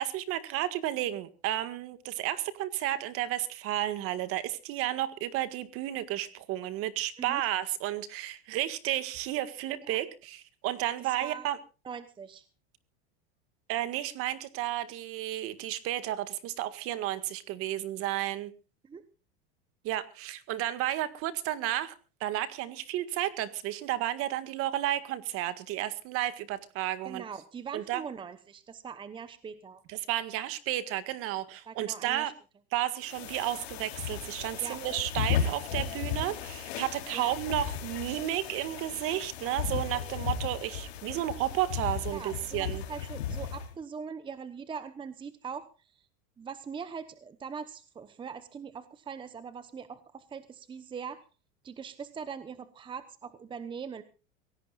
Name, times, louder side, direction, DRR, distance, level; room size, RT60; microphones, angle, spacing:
voice 1, 0.0-11.6 13.7-18.5 19.8-21.9 22.2-27.2 27.7-28.0 29.9-32.3 32.7-42.8, right 13 dB, 45° right, 12 dB, 1.8 m, -32 dB
voice 2, 11.0-11.5 11.8-12.5 18.8-19.0 27.0-29.8 31.7-32.3 34.6-34.8 37.1-37.3 42.1-46.1 46.4-51.3 51.6-54.0, right 6 dB, 15° right, 12 dB, 1.0 m, -42 dB
sound 1, 33.0-43.7, left 8 dB, 90° left, 3.9 m, -35 dB
23.5 x 17.5 x 2.5 m, 0.33 s
supercardioid pair, 140°, 31 cm